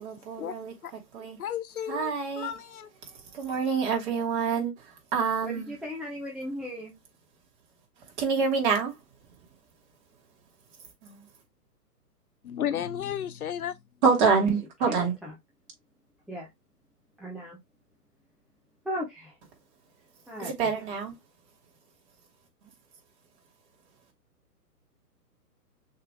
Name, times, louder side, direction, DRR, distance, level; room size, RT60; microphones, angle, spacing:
voice 1, 0.0-1.4 1.9-2.5 3.0-5.7 8.0-9.6 10.8-11.3 14.0-15.2 20.1-21.2 22.6-22.8, right 5 dB, 40° right, 2.7 m, -28 dB
voice 2, 1.4-2.9 12.4-13.8, left 10 dB, 60° left, 0.8 m, -33 dB
voice 3, 5.4-7.0 14.9-15.0 16.3-16.5 17.2-17.6 18.8-19.3 20.3-20.5, equal, ahead, 0.7 m, -36 dB
6.4 x 3.4 x 2.2 m
hypercardioid pair, 130°, 48 cm